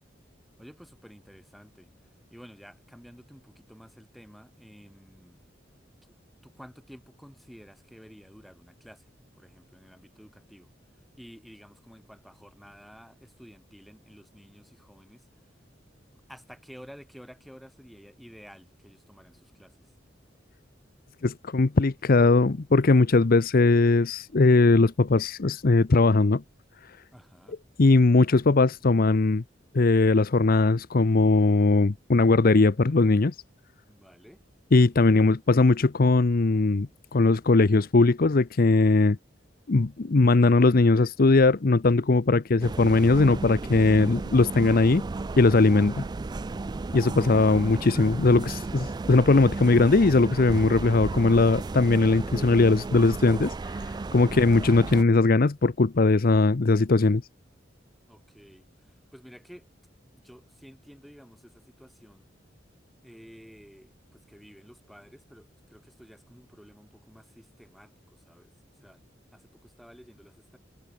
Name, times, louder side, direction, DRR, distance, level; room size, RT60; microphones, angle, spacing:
voice 1, 0.6-1.9 2.3-5.4 6.4-9.1 9.3-10.7 11.2-15.4 16.3-19.9 27.1-27.6 33.9-34.5 58.1-59.7 60.1-62.3 63.0-68.5 68.8-69.0 69.3-70.6, equal, ahead, 6.2 m, -51 dB
voice 2, 21.2-26.4 27.8-29.4 29.7-33.3 34.7-39.2 39.7-45.0 45.4-46.0 46.9-53.8 54.1-57.2, left 3 dB, 55° left, 0.7 m, -20 dB
sound 1, 42.6-55.0, right 3 dB, 20° right, 0.3 m, -34 dB
head